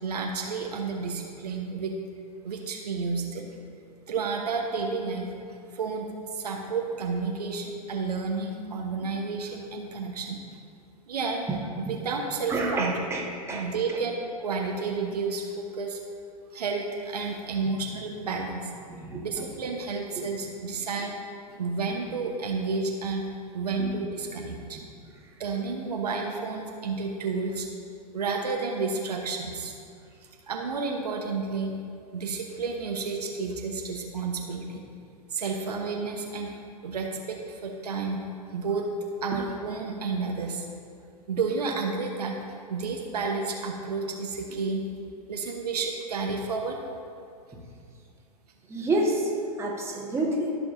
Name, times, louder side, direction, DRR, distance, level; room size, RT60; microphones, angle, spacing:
voice 1, 0.0-1.9 2.4-3.5 4.1-5.3 5.7-6.1 6.3-10.4 11.1-11.4 11.8-12.9 13.5-16.0 16.5-18.7 19.2-21.2 21.6-23.2 23.5-24.8 25.4-27.7 28.1-29.7 30.5-31.7 32.1-34.8 35.3-36.6 36.8-38.2 38.5-38.9 39.2-40.6 41.3-42.3 42.7-44.8 45.3-46.8, right 4 dB, 75° right, 1 dB, 1.1 m, -31 dB
voice 2, 12.5-13.7 19.0-19.2 23.8-23.9 48.7-49.3 49.6-50.6, right 1 dB, 15° right, -3 dB, 1.5 m, -28 dB
14.0 x 6.3 x 2.7 m, 2.3 s
figure-of-eight pair, 100°, 20 cm